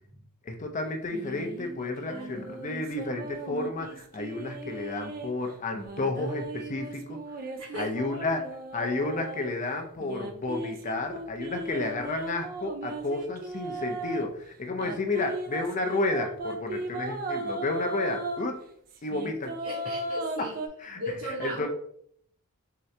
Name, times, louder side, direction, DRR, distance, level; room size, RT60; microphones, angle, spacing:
voice 1, 0.4-7.2 7.8-8.5 8.7-18.6 19.0-19.5 20.4-20.5 20.8-21.0 21.4-21.7, left 2 dB, 35° left, 4 dB, 0.5 m, -31 dB
sound 1, 1.1-5.3 5.7-9.5 10.0-14.3 14.8-18.4 18.9-20.7, right 2 dB, 40° right, 0.4 m, -37 dB
voice 2, 2.1-2.5 7.6-8.2 15.1-15.2 19.6-20.5 21.0-21.7, equal, 75° right, -6 dB, 1.1 m, -37 dB
3.6 x 2.8 x 3.2 m, 0.66 s
head